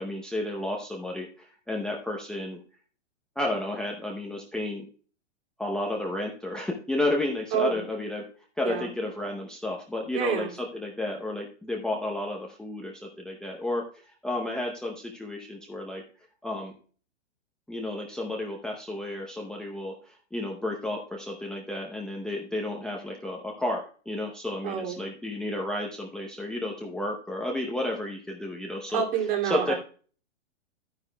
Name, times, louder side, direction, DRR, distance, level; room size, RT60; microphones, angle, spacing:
voice 1, 0.0-2.6 3.4-4.8 5.6-8.2 8.6-13.8 14.2-16.0 16.4-16.7 17.7-29.0 29.4-29.7, left 1 dB, ahead, 0 dB, 0.6 m, -32 dB
voice 2, 10.1-10.5 24.6-25.0 28.9-29.7, right 8 dB, 45° right, 1 dB, 2.6 m, -28 dB
11.5 x 9.8 x 2.2 m, 0.41 s
hypercardioid pair, 140°, 36 cm